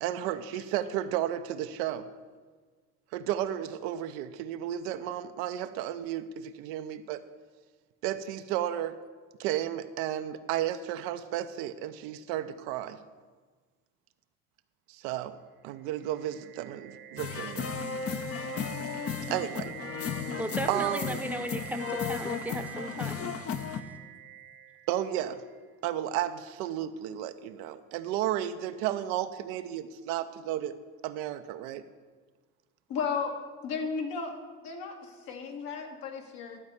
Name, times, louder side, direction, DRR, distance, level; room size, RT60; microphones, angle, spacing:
voice 1, 0.0-2.1 3.1-7.2 8.0-9.0 9.4-13.0 14.9-15.3 15.6-17.7 19.3-19.7 20.7-21.2 24.9-25.4 25.8-30.7 31.0-31.8, right 12 dB, 75° right, 10 dB, 0.7 m, -33 dB
sound 1, 15.8-25.6, right 9 dB, 30° right, 0.5 m, -46 dB
sound 2, 17.2-23.8, left 6 dB, 40° left, 0.8 m, -35 dB
voice 2, 20.4-23.3, right 1 dB, 5° right, 7 dB, 0.9 m, -36 dB
voice 3, 32.9-33.3 33.6-34.3 34.6-34.9 35.3-36.6, left 5 dB, 65° left, 2 dB, 1.8 m, -33 dB
12.0 x 4.2 x 8.1 m, 1.5 s
hypercardioid pair, 75°, 38 cm